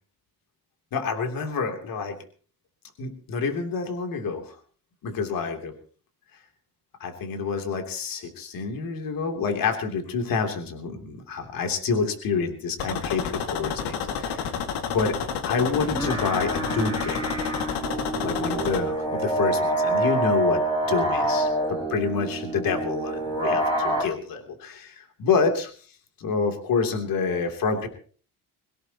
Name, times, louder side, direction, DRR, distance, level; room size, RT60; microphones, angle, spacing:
voice 1, 0.9-2.2 3.0-4.6 5.0-5.7 7.0-14.5 14.9-15.2 15.4-17.3 18.2-25.7 26.2-27.9, left 5 dB, 60° left, 5 dB, 3.1 m, -28 dB
sound 1, 12.8-18.8, left 7 dB, 85° left, 2.3 m, -30 dB
sound 2, 15.8-24.0, right 1 dB, 10° left, 7.4 m, -26 dB
23.0 x 17.0 x 3.0 m, 0.41 s
cardioid pair, 125°, 39 cm